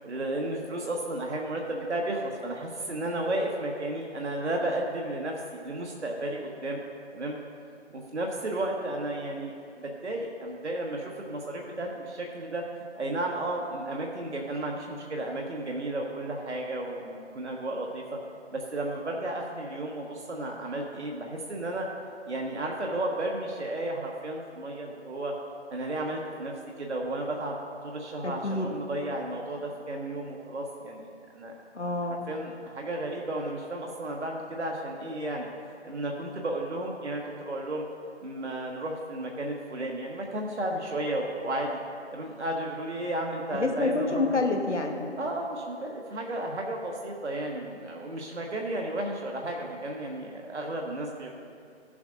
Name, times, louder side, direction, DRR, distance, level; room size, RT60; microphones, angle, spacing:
voice 1, 0.0-6.8 7.1-7.4 7.9-9.5 9.8-18.0 18.5-21.9 22.3-25.3 25.7-27.6 27.8-31.0 31.3-31.5 32.3-35.4 35.8-37.8 38.2-41.8 42.1-44.4 45.2-51.4, right 1 dB, 70° right, 0 dB, 1.3 m, -33 dB
voice 2, 28.2-28.7 31.7-32.3 43.5-45.1, left 3 dB, 75° left, 2 dB, 1.5 m, -28 dB
17.0 x 7.2 x 2.6 m, 2.3 s
figure-of-eight pair, 155°, 35 cm